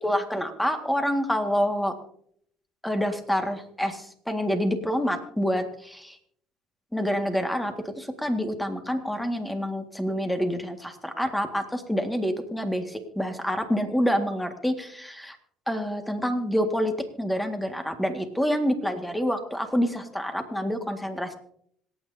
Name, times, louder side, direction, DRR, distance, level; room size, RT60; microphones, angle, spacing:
voice 1, 0.0-1.9 2.8-6.2 6.9-15.4 15.7-21.3, equal, 5° left, 6 dB, 1.8 m, -27 dB
26.5 x 9.1 x 2.8 m, 0.66 s
supercardioid pair, 90°, 0 cm